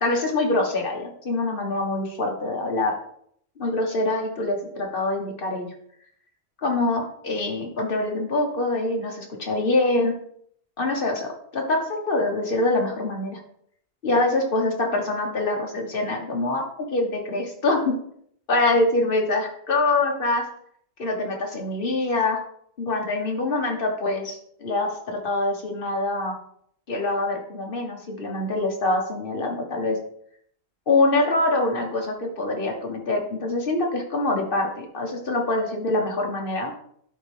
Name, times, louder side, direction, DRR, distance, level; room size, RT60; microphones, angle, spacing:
voice 1, 0.0-2.9 3.6-5.7 6.6-10.1 10.8-13.4 14.0-18.0 18.5-20.4 21.0-22.4 22.8-26.4 26.9-30.0 30.9-36.7, left 2 dB, 55° left, 1 dB, 1.6 m, -24 dB
11.0 x 4.5 x 3.5 m, 0.65 s
omnidirectional pair, 1.1 m